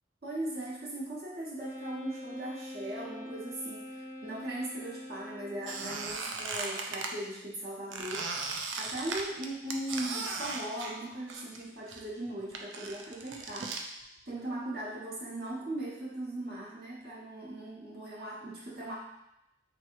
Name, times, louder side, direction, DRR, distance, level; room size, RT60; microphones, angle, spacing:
voice 1, 0.2-14.0 14.3-19.0, right 1 dB, 55° right, -6 dB, 1.0 m, -39 dB
Wind instrument woodwind instrument, 1.6-6.2, left 1 dB, 20° left, 0.5 m, -44 dB
Squeak, 5.6-7.1 7.9-11.6 11.9-13.8, right 4 dB, 90° right, 0.5 m, -37 dB
3.5 x 3.0 x 4.5 m, 0.85 s
head